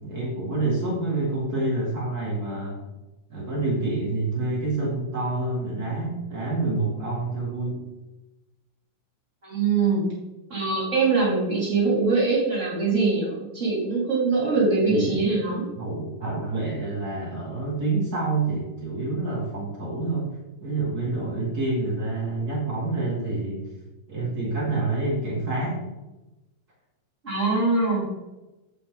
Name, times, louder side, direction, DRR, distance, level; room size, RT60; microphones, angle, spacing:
voice 1, 0.0-2.8 3.3-7.8 14.9-15.2 15.7-20.3 20.6-23.6 24.1-25.8, right 3 dB, 75° right, -5 dB, 0.8 m, -27 dB
voice 2, 9.4-10.0 10.5-15.7 27.2-28.0, right 3 dB, 20° right, -5 dB, 2.0 m, -23 dB
8.9 x 8.4 x 3.8 m, 1.1 s
omnidirectional pair, 5.5 m